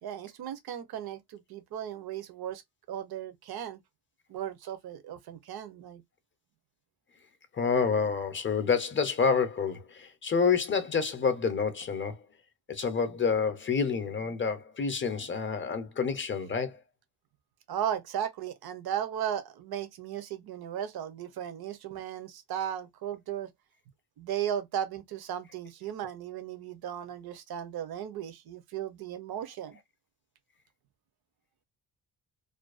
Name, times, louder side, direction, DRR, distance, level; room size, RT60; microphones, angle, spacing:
voice 1, 0.0-2.6 2.9-3.8 4.3-6.0 17.7-23.5 24.2-29.8, right 10 dB, 65° right, 0.6 m, -36 dB
voice 2, 7.5-12.2 12.7-16.8, left 5 dB, 30° left, 0.5 m, -28 dB
2.5 x 2.2 x 2.3 m
cardioid pair, 105°, 41 cm